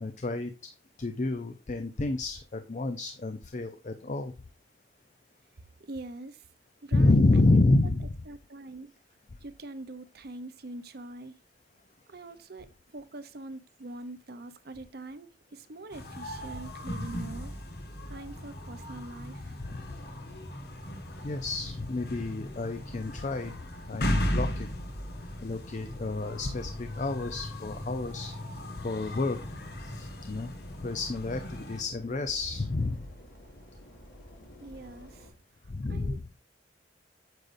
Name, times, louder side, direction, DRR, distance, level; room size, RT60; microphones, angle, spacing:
voice 1, 0.0-0.5 1.0-4.3 6.9-8.1 19.6-19.8 21.2-23.5 23.9-24.7 25.4-28.3 28.8-29.4 29.8-30.5 30.8-33.1 35.7-36.1, left 2 dB, 40° left, 0.6 m, -29 dB
voice 2, 5.8-6.4 6.8-7.6 8.3-8.9 9.4-11.4 12.1-17.5 18.1-19.6 34.6-35.3 35.9-36.2, right 2 dB, 60° right, 0.7 m, -44 dB
sound 1, 15.9-31.8, left 1 dB, 60° left, 1.4 m, -37 dB
sound 2, 19.6-35.3, equal, 80° left, 5.1 m, -53 dB
9.1 x 6.5 x 2.6 m
head